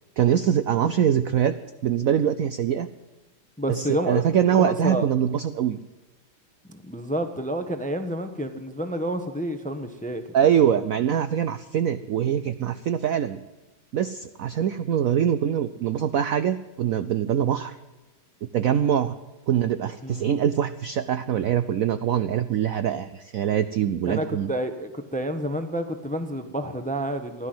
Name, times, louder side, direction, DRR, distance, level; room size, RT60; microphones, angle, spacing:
voice 1, 0.2-1.5 1.8-2.9 3.7-5.8 10.3-13.4 13.9-17.7 18.4-19.1 19.5-24.5, right 9 dB, 80° right, 13 dB, 0.7 m, -23 dB
voice 2, 3.6-4.2 4.6-5.1 6.7-10.2 20.0-20.3 24.1-27.5, right 1 dB, 5° left, 9 dB, 0.6 m, -29 dB
15.5 x 11.5 x 7.8 m, 1.1 s
omnidirectional pair, 2.2 m